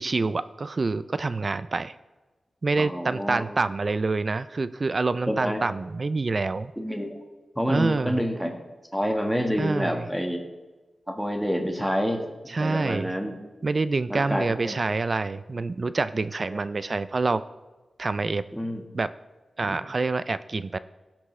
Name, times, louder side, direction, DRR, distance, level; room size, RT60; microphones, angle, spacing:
voice 1, 0.0-2.0 2.6-6.7 7.7-8.2 9.6-10.1 12.5-13.1 13.6-17.4 18.0-18.4 18.9-19.1 19.6-20.8, right 3 dB, 45° right, 14 dB, 0.3 m, -27 dB
voice 2, 2.8-3.4 5.3-5.6 6.8-7.2 7.5-8.6 8.9-10.4 11.1-12.2 12.6-13.4 14.1-14.7 16.5-16.6 18.5-18.8 19.6-19.8, equal, ahead, 3 dB, 1.4 m, -28 dB
17.0 x 6.0 x 3.2 m, 1.2 s
wide cardioid pair, 85°, 0 cm